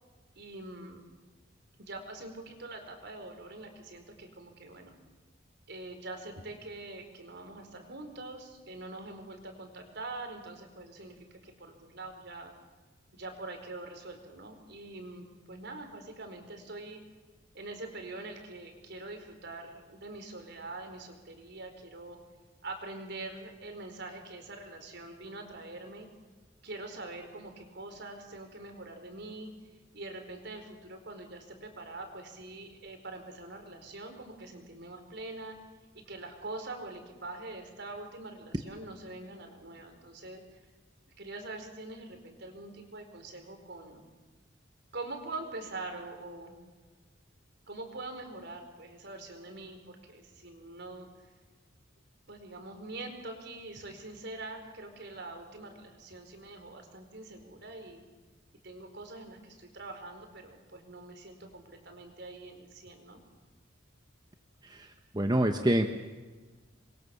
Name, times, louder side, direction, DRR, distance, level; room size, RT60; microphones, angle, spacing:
voice 1, 0.3-1.1 1.8-4.9 5.7-12.5 13.1-17.0 17.5-22.2 22.6-26.1 26.6-29.5 29.9-35.6 35.9-40.6 41.2-44.0 44.9-46.7 47.7-51.1 52.3-58.0 58.6-63.2, right 2 dB, 60° right, 5 dB, 4.8 m, -44 dB
voice 2, 65.1-65.9, right 1 dB, 20° right, 6 dB, 1.1 m, -26 dB
27.5 x 23.0 x 7.2 m, 1.3 s
head